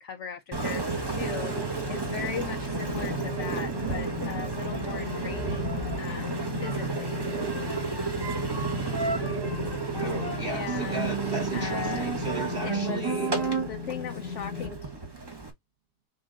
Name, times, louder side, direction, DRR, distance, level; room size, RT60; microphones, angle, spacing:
voice 1, 0.0-7.7 10.4-11.2 11.5-12.1 12.6-14.9, left 8 dB, 75° left, 0.6 m, -39 dB
Engine, 0.5-15.5, right 4 dB, 30° right, 0.4 m, -31 dB
sound 1, 1.2-14.7, right 7 dB, 75° right, 1.2 m, -41 dB
sound 2, 1.9-14.7, left 8 dB, 60° left, 1.1 m, -38 dB
voice 2, 10.0-13.3, right 3 dB, 45° right, 0.8 m, -35 dB
5.8 x 2.3 x 3.7 m
omnidirectional pair, 1.8 m